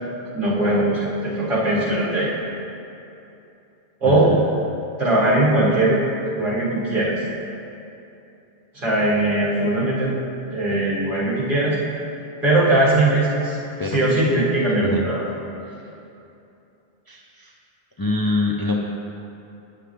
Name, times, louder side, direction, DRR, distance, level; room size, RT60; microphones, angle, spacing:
voice 1, 0.3-2.3 4.0-4.3 5.0-6.0 6.3-7.1 8.7-10.1 10.5-11.8 12.4-13.6 13.8-15.2, right 1 dB, 55° right, -8 dB, 2.1 m, -20 dB
voice 2, 4.1-4.4 13.8-14.0 14.8-15.1 17.1-17.5 18.0-18.8, left 3 dB, 35° left, -1 dB, 0.3 m, -25 dB
8.9 x 7.2 x 3.3 m, 2.8 s
omnidirectional pair, 1.1 m